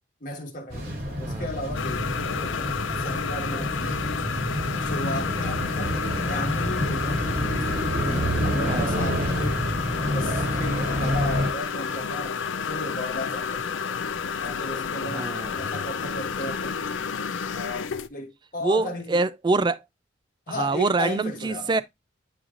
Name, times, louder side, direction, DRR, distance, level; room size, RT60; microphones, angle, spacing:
voice 1, 0.2-4.3 4.8-7.2 8.0-9.6 10.1-12.4 12.6-14.0 14.4-16.8 17.5-19.2 20.5-21.8, left 1 dB, 45° left, 1.4 m, -35 dB
sound 1, 0.7-11.5, equal, 50° right, 3.5 m, -28 dB
sound 2, 1.7-18.1, left 6 dB, 80° left, 0.5 m, -30 dB
voice 2, 8.7-9.1 15.1-15.5 18.6-19.8 20.5-21.8, right 3 dB, 25° right, 0.3 m, -25 dB
9.5 x 3.2 x 3.7 m
head